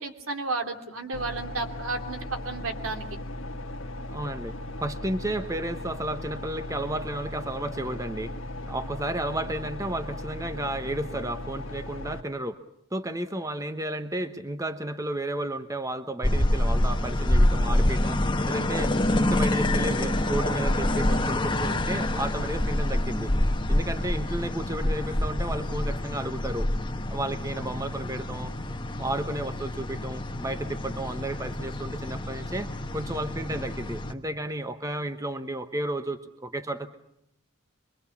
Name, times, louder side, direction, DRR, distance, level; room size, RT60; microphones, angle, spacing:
voice 1, 0.0-2.2 2.4-3.1 21.6-21.8, right 3 dB, 85° right, 4 dB, 2.9 m, -32 dB
sound 1, 1.1-12.2, left 1 dB, 75° left, 1.4 m, -37 dB
voice 2, 4.1-4.5 4.8-8.3 8.7-12.6 12.9-18.2 18.5-23.3 23.7-26.7 27.1-28.5 29.0-36.9, right 1 dB, 15° right, 9 dB, 1.0 m, -32 dB
sound 2, 16.2-34.1, left 1 dB, 20° left, 1.2 m, -27 dB
25.5 x 23.0 x 7.1 m, 0.75 s
head